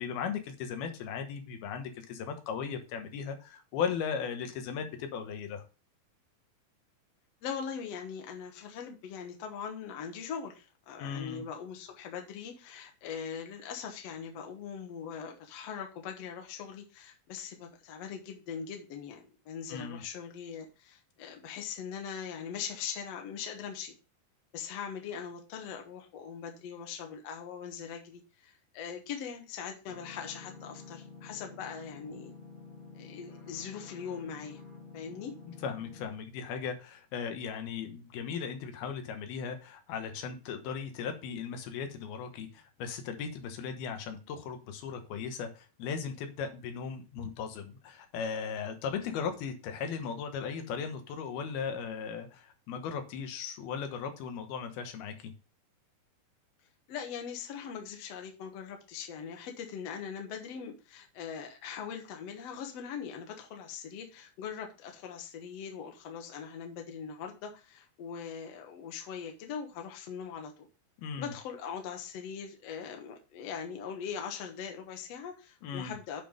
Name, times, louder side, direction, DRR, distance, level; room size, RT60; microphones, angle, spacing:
voice 1, 0.0-5.6 11.0-11.5 19.7-20.0 35.6-55.3 71.0-71.3 75.6-75.9, left 6 dB, 85° left, 6 dB, 3.2 m, -37 dB
voice 2, 7.4-23.9 24.5-32.3 33.0-34.6 34.9-35.3 56.9-70.5 71.2-76.2, left 7 dB, 60° left, 3 dB, 1.8 m, -41 dB
sound 1, 29.9-36.0, left 4 dB, 35° left, 1.3 m, -49 dB
8.4 x 5.4 x 5.2 m, 0.33 s
omnidirectional pair, 4.3 m